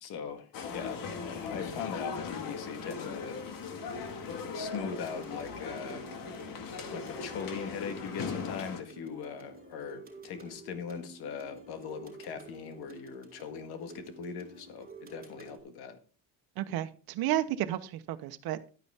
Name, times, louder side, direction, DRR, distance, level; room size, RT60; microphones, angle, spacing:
voice 1, 0.0-3.5 4.5-6.1 6.9-16.0, left 6 dB, 85° left, 8 dB, 1.9 m, -40 dB
sound 1, 0.5-8.8, left 5 dB, 60° left, 2.1 m, -39 dB
sound 2, 2.8-15.6, right 4 dB, 25° right, 3.9 m, -51 dB
voice 2, 16.6-18.7, right 12 dB, 75° right, 9 dB, 1.1 m, -32 dB
11.5 x 9.7 x 3.6 m, 0.36 s
cardioid pair, 150°, 37 cm